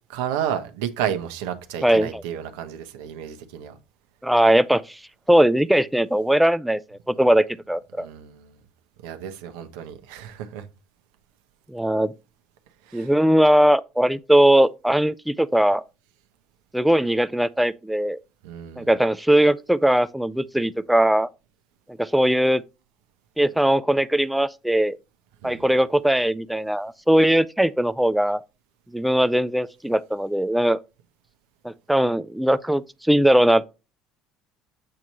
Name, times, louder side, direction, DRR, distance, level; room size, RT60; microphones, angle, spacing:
voice 1, 0.1-3.8 8.0-8.5 9.0-10.7 12.8-13.1 18.4-18.9 25.4-25.7, right 9 dB, 85° right, 1.0 m, -31 dB
voice 2, 1.8-2.2 4.2-5.0 5.3-8.1 11.7-12.1 12.9-15.8 16.7-18.2 18.8-21.3 22.0-22.6 23.4-25.0 25.4-28.4 28.9-30.8 31.6-33.6, right 1 dB, 5° right, 0.4 m, -20 dB
7.8 x 3.0 x 5.4 m
supercardioid pair, 75°, 0 cm